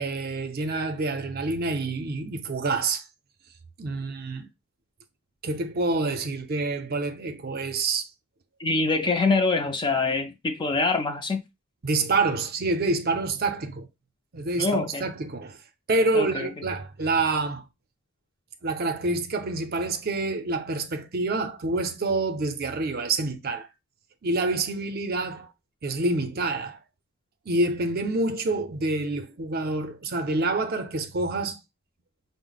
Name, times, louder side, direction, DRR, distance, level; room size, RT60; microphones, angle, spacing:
voice 1, 0.0-3.0 3.8-4.5 5.4-8.1 11.8-13.9 14.3-15.6 15.9-17.6 18.6-23.7 24.2-25.5 25.8-26.8 27.5-31.6, right 3 dB, 45° right, 0.5 m, -27 dB
voice 2, 8.6-11.4 14.6-15.1 16.1-16.5, left 3 dB, 20° left, 0.4 m, -24 dB
5.5 x 2.0 x 3.9 m
head